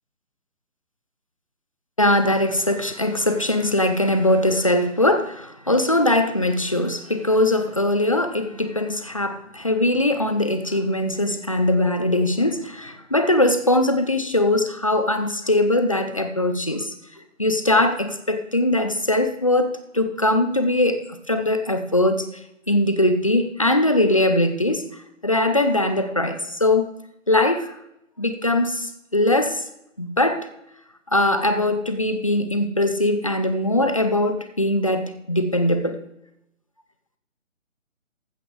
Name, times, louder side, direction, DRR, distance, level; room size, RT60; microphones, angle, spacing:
voice 1, 2.0-16.9 17.4-22.3 22.7-26.9 27.3-27.7 28.2-29.6 30.0-30.5 31.1-36.0, left 1 dB, 25° left, 0.6 m, -21 dB
15.0 x 11.5 x 3.3 m
figure-of-eight pair, 170°, 39 cm